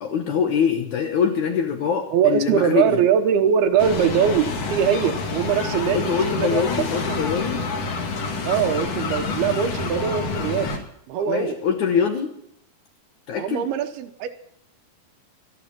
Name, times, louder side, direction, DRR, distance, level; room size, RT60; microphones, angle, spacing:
voice 1, 0.0-3.0 5.9-7.6 11.3-12.3 13.3-13.7, left 7 dB, 65° left, 5 dB, 2.0 m, -23 dB
voice 2, 2.1-7.2 8.4-10.8 11.1-11.6 13.4-14.3, right 8 dB, 80° right, 8 dB, 2.9 m, -22 dB
sound 1, 3.8-10.8, left 4 dB, 50° left, 2.4 m, -28 dB
12.5 x 12.5 x 7.5 m, 0.70 s
omnidirectional pair, 4.6 m